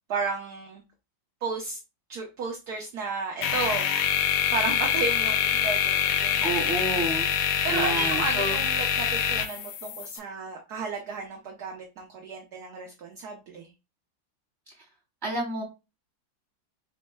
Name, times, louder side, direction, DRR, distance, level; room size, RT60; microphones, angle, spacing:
voice 1, 0.1-0.8 1.4-1.8 2.1-3.9 4.5-6.7 7.6-13.7, right 4 dB, 60° right, 1 dB, 1.2 m, -33 dB
sound 1, 3.4-10.2, left 8 dB, 85° left, 0.7 m, -25 dB
voice 2, 6.4-8.6 15.2-15.6, right 1 dB, 10° right, -4 dB, 2.9 m, -30 dB
5.3 x 4.0 x 2.2 m, 0.28 s
omnidirectional pair, 2.2 m